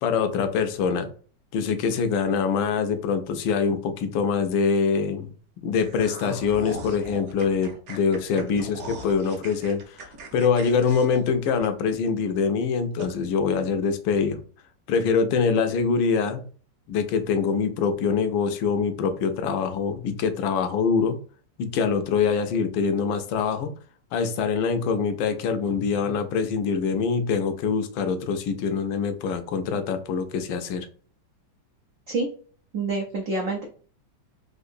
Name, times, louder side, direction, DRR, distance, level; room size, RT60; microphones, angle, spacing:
voice 1, 0.0-1.1 1.5-5.3 5.6-10.1 10.3-14.4 14.9-16.4 16.9-21.2 21.6-23.7 24.1-30.9, left 5 dB, 85° left, 8 dB, 1.3 m, -24 dB
sound 1, 5.8-12.1 12.5-12.6 13.0-13.1, right 2 dB, 65° right, 1.0 m, -40 dB
voice 2, 32.7-33.6, right 3 dB, 90° right, 1 dB, 0.6 m, -27 dB
3.7 x 2.5 x 2.5 m, 0.42 s
omnidirectional pair, 2.1 m